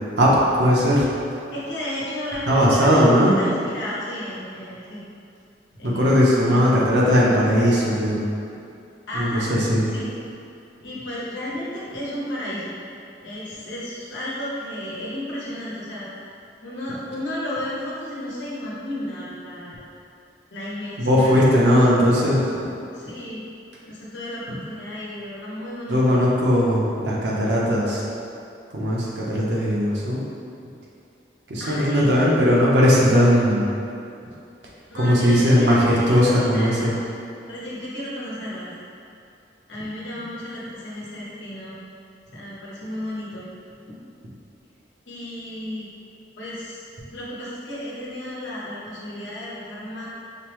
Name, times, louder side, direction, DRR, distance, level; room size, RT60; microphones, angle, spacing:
voice 1, 0.2-1.1 2.5-3.4 5.8-8.2 9.1-9.8 21.0-22.4 24.5-24.6 25.9-28.0 28.7-30.2 31.5-33.6 34.9-36.9, equal, 75° right, -5 dB, 0.8 m, -18 dB
voice 2, 1.5-3.0 3.4-5.0 5.7-6.8 9.1-9.5 9.9-10.1 10.8-12.7 13.2-16.1 16.6-19.8 20.5-21.5 22.9-23.4 23.9-26.2 31.6-32.1 34.9-36.9 37.5-38.7 39.7-41.8 42.3-43.4 45.1-45.9 46.4-46.8 47.1-50.1, left 1 dB, 90° left, -7 dB, 1.0 m, -33 dB
5.1 x 2.0 x 3.0 m, 2.6 s
head